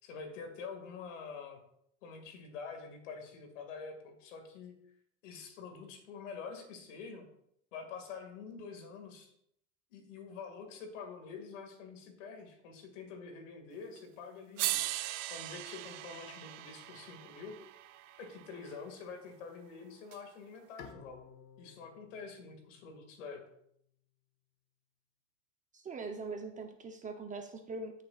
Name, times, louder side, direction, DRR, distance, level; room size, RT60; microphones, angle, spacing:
voice 1, 0.0-1.6 2.0-4.7 5.2-7.3 7.7-9.3 9.9-14.8 15.3-17.6 18.2-21.3 21.6-23.4, left 5 dB, 90° left, 5 dB, 2.1 m, -46 dB
sound 1, 14.0-14.1 14.6-18.8 20.1-20.2, right 16 dB, 90° right, 0.7 m, -39 dB
Bowed string instrument, 20.8-24.0, left 7 dB, 55° left, 1.3 m, -56 dB
voice 2, 25.7-28.0, right 3 dB, 20° right, 4 dB, 0.7 m, -42 dB
14.0 x 6.7 x 2.4 m, 0.72 s
supercardioid pair, 130°, 36 cm